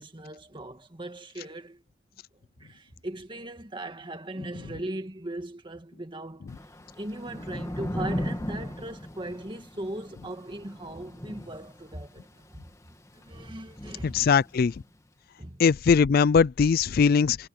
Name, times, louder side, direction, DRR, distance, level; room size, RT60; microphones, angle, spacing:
voice 1, 0.0-1.8 2.6-6.5 7.0-12.6 13.1-14.2 15.4-15.6, right 1 dB, 25° right, 2.1 m, -39 dB
Thunder / Rain, 6.5-14.9, equal, 15° left, 2.0 m, -38 dB
voice 2, 14.0-14.7 15.6-17.4, left 6 dB, 55° left, 0.4 m, -20 dB
head